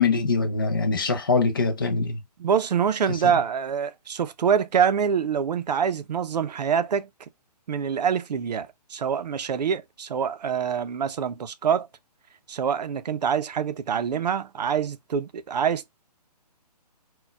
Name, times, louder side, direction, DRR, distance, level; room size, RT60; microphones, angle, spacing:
voice 1, 0.0-2.2 3.1-3.4, left 4 dB, 30° left, 0.4 m, -23 dB
voice 2, 2.4-7.1 7.7-11.9 12.5-15.9, right 7 dB, 75° right, 0.5 m, -25 dB
4.0 x 2.2 x 2.2 m
hypercardioid pair, 175°, 21 cm